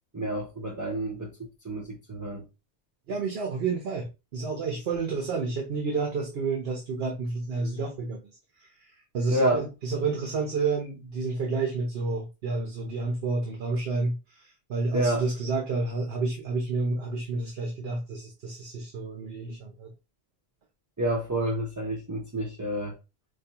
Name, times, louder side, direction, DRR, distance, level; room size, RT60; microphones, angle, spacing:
voice 1, 0.1-2.4 9.3-9.6 14.9-15.2 21.0-22.9, right 1 dB, 20° right, 0.6 m, -29 dB
voice 2, 3.1-8.2 8.6-19.9, right 3 dB, 65° right, 0.9 m, -30 dB
5.1 x 2.2 x 2.8 m
omnidirectional pair, 1.1 m